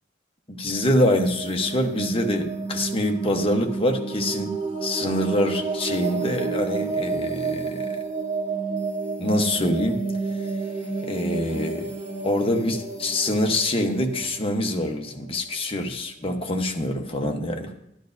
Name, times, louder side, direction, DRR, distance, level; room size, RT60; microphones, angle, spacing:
voice 1, 0.5-4.6 4.8-7.9 9.2-10.0 11.0-11.9 12.2-17.7, left 1 dB, 30° left, 3 dB, 0.9 m, -25 dB
sound 1, 0.7-15.4, right 4 dB, 40° right, 2.5 m, -30 dB
11.5 x 11.0 x 2.6 m, 0.82 s
head